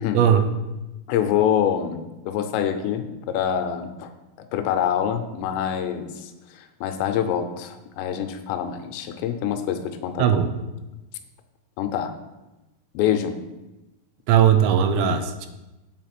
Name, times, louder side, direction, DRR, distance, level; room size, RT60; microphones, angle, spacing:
voice 1, 0.1-0.5 10.2-10.6 14.3-15.5, right 8 dB, 85° right, 8 dB, 3.0 m, -18 dB
voice 2, 1.1-2.0 2.3-4.1 4.5-10.2 11.8-12.1 12.9-13.4, left 9 dB, 85° left, 7 dB, 2.9 m, -25 dB
7.7 x 4.8 x 5.9 m, 1.0 s
omnidirectional pair, 5.0 m